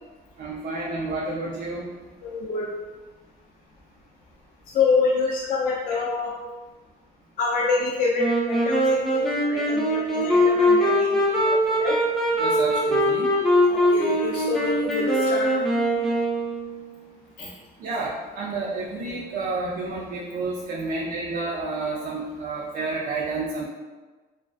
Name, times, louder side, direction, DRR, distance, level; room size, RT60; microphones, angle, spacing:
voice 1, 0.4-1.9 12.4-13.3 17.8-23.7, right 3 dB, 55° right, -5 dB, 0.4 m, -30 dB
voice 2, 2.2-2.7 4.7-6.3 7.4-11.9 13.7-15.5 17.4-17.5, left 4 dB, 55° left, -4 dB, 0.4 m, -26 dB
Wind instrument woodwind instrument, 8.2-16.9, equal, ahead, 0.5 m, -22 dB
2.4 x 2.3 x 2.3 m, 1.3 s
cardioid pair, 110°, 17 cm